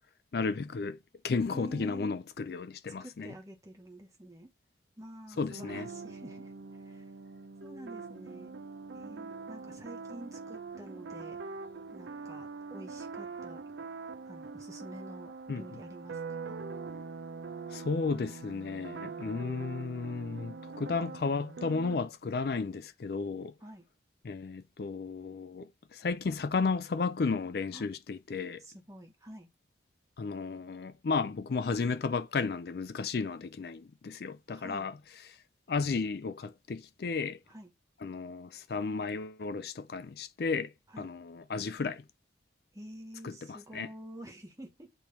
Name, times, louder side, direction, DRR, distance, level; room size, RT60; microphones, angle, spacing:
voice 1, 0.3-1.0 1.2-3.3 5.4-5.9 15.5-15.7 17.7-23.5 24.2-28.6 30.2-34.9 35.3-35.4 35.7-37.4 38.0-42.0 43.2-43.9, left 4 dB, 55° left, 0.4 m, -33 dB
voice 2, 1.5-2.2 2.9-4.5 5.0-7.1 7.6-8.5 8.9-11.4 11.9-13.6 14.3-16.6 23.6-23.9 27.7-27.9 28.6-29.5 34.5-34.9 37.5-37.7 40.9-41.1 42.7-44.9, right 1 dB, 15° right, 1.2 m, -48 dB
sound 1, 5.3-22.0, right 4 dB, 75° right, 0.6 m, -43 dB
8.7 x 3.0 x 5.2 m
head